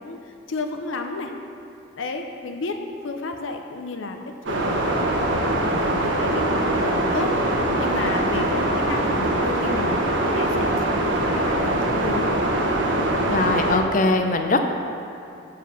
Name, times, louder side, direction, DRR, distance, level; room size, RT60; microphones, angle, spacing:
voice 1, 0.0-1.3 1.9-2.8 3.0-4.2 4.5-4.9 5.5-7.3 7.8-12.4, left 3 dB, 85° left, 5 dB, 0.6 m, -32 dB
sound 1, 4.5-13.8, right 1 dB, 75° right, 1.0 m, -22 dB
voice 2, 13.3-14.6, left 3 dB, 40° left, 5 dB, 0.5 m, -21 dB
7.3 x 4.7 x 6.9 m, 2.7 s
head